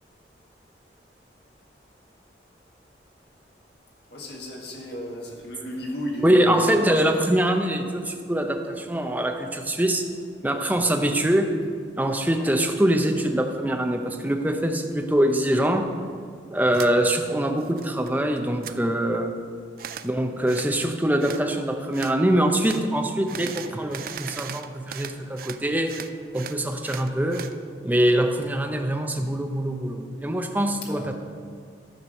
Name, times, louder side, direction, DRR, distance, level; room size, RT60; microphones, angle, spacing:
voice 1, 4.1-7.2 10.7-10.9 16.6-16.8 30.8-31.1, equal, 70° left, -2 dB, 1.9 m, -35 dB
voice 2, 6.2-10.1 10.4-11.5 12.0-15.9 16.5-19.3 20.0-26.0 26.3-27.5 27.8-31.1, right 1 dB, 10° right, 4 dB, 0.6 m, -23 dB
sound 1, 16.7-16.9 17.3-18.1 18.4-18.8 19.8-20.1 20.5-20.7 21.2-21.4 21.9-22.2 22.6-22.8 23.3-25.6 25.9-27.5, right 8 dB, 55° right, 0.4 m, -38 dB
13.0 x 4.7 x 6.4 m, 2.1 s
head